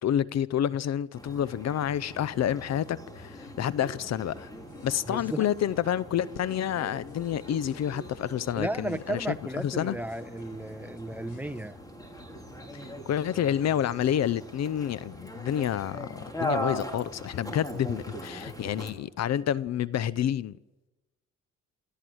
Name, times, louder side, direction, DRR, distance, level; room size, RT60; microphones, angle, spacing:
voice 1, 0.0-4.5 4.8-9.3 9.6-10.0 12.7-20.5, left 10 dB, 60° left, 0.7 m, -29 dB
sound 1, 1.2-18.9, equal, 10° left, 3.4 m, -40 dB
sound 2, 4.5-11.7, left 6 dB, 80° left, 5.0 m, -52 dB
voice 2, 5.1-5.5 8.6-11.8, right 1 dB, 5° right, 1.0 m, -34 dB
26.5 x 13.5 x 7.9 m
cardioid pair, 90°, 30 cm